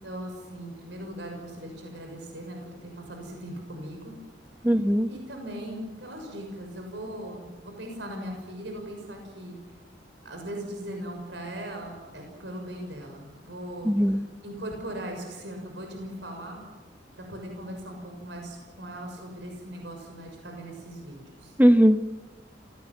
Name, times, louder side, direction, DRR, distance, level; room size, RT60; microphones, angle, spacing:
voice 1, 0.0-4.1 5.1-9.6 10.2-16.6 17.2-21.5, right 1 dB, 70° right, 3 dB, 6.4 m, -39 dB
voice 2, 4.6-5.1 13.8-14.2 21.6-22.0, equal, 10° right, 9 dB, 1.3 m, -19 dB
28.0 x 19.0 x 8.8 m, 1.2 s
head